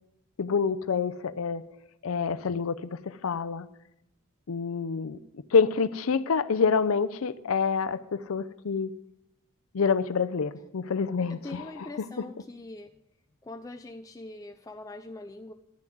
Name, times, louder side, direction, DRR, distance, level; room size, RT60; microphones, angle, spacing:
voice 1, 0.4-1.6 2.0-3.7 4.5-8.9 9.7-12.2, left 5 dB, 80° left, 13 dB, 0.5 m, -27 dB
voice 2, 11.3-12.9 13.4-15.5, left 2 dB, 15° left, 6 dB, 0.4 m, -42 dB
11.0 x 7.2 x 9.2 m, 0.86 s
head